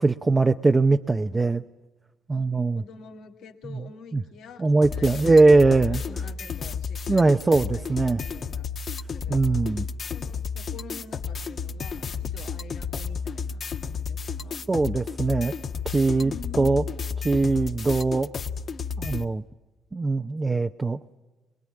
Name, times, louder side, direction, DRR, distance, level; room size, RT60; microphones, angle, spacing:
voice 1, 0.0-1.6 2.3-2.8 4.1-4.2 4.6-6.0 7.1-8.2 9.3-9.8 14.7-15.5 15.8-16.3 16.6-16.8 17.2-18.3 19.0-19.4 19.9-21.0, right 3 dB, 25° right, 6 dB, 0.7 m, -21 dB
voice 2, 2.7-5.5 5.9-8.7 9.1-9.7 10.0-14.6 16.2-16.7, left 6 dB, 80° left, 4 dB, 2.3 m, -46 dB
sound 1, 4.8-19.2, left 6 dB, 50° left, 1.4 m, -32 dB
23.0 x 21.5 x 9.8 m, 1.2 s
cardioid pair, 90°, 0 cm